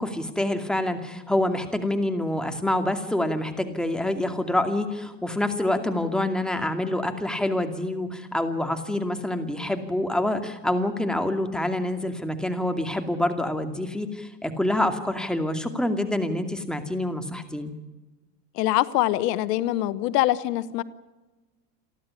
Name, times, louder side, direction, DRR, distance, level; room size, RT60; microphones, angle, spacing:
voice 1, 0.0-17.7, left 1 dB, ahead, 6 dB, 2.4 m, -26 dB
voice 2, 18.6-20.8, left 15 dB, 75° left, 16 dB, 1.1 m, -24 dB
29.0 x 11.5 x 9.8 m, 1.2 s
supercardioid pair, 125°, 48 cm